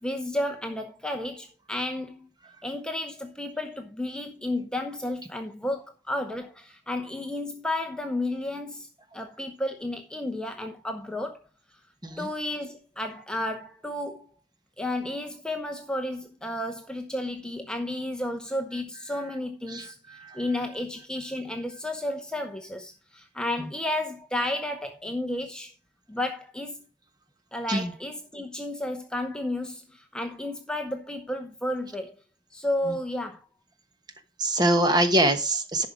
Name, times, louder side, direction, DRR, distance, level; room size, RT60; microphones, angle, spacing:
voice 1, 0.0-2.3 2.6-8.9 9.1-11.5 12.2-14.3 14.8-25.7 26.1-26.8 27.5-32.2 32.5-33.4, left 1 dB, 5° left, 0.8 m, -32 dB
voice 2, 19.7-20.4 23.6-23.7 27.7-27.9 32.9-33.0 34.4-35.9, right 1 dB, 20° right, 1.1 m, -24 dB
11.0 x 5.7 x 5.1 m
head